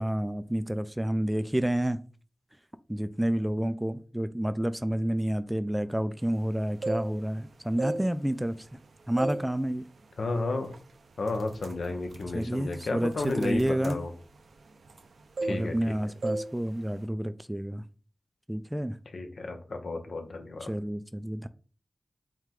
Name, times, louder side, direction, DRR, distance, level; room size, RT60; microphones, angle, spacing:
voice 1, 0.0-2.0 2.9-8.6 9.1-9.8 12.3-14.0 15.5-17.8 18.5-19.0 20.6-21.5, right 1 dB, 10° right, 0.3 m, -29 dB
sound 1, 6.6-7.4 7.7-8.8 9.2-9.5 9.9-10.1 10.7-10.9 11.2-15.1 15.4-15.9 16.2-16.5 16.8-17.1, right 2 dB, 85° right, 0.5 m, -35 dB
voice 2, 10.2-10.7 11.2-14.1 15.4-16.0 19.1-20.7, left 3 dB, 80° left, 0.7 m, -32 dB
4.7 x 2.2 x 3.7 m
cardioid pair, 45°, 0 cm